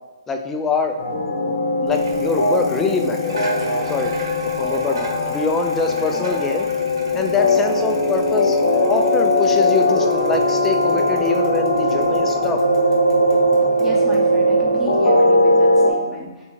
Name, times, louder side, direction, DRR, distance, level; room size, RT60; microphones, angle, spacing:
voice 1, 0.3-1.0 1.8-3.4 3.8-4.1 4.6-6.7 7.1-8.6 8.9-12.6, left 4 dB, 10° left, 4 dB, 0.3 m, -24 dB
sound 1, 1.0-15.9, left 1 dB, 80° left, 0.8 m, -19 dB
Bicycle, 1.9-15.0, right 2 dB, 75° right, 1.2 m, -39 dB
voice 2, 13.8-16.4, equal, 5° right, -4 dB, 0.8 m, -32 dB
3.5 x 2.8 x 4.2 m, 1.2 s
hypercardioid pair, 160°, 3 cm